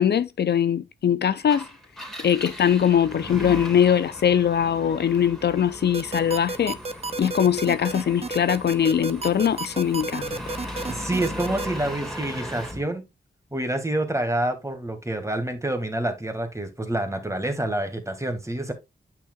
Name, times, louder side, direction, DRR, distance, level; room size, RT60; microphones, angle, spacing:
voice 1, 0.0-1.6 2.2-6.8 7.2-10.3, left 9 dB, 65° left, 0.4 m, -21 dB
Engine, 1.4-12.8, equal, ahead, 2.9 m, -38 dB
sound 1, 5.9-11.7, right 3 dB, 35° right, 0.6 m, -31 dB
voice 2, 10.9-13.0 13.5-18.7, right 1 dB, 15° right, 1.8 m, -27 dB
8.6 x 5.8 x 2.3 m
cardioid pair, 45°, 18 cm